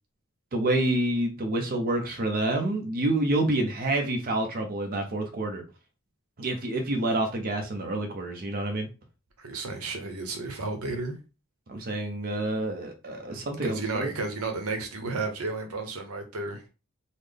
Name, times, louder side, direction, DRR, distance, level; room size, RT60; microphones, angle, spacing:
voice 1, 0.5-5.6 6.4-8.9 11.7-14.1, right 2 dB, 45° right, 0.7 m, -28 dB
voice 2, 9.4-11.1 13.6-16.7, right 3 dB, 85° right, 0.8 m, -32 dB
4.0 x 2.0 x 3.3 m
head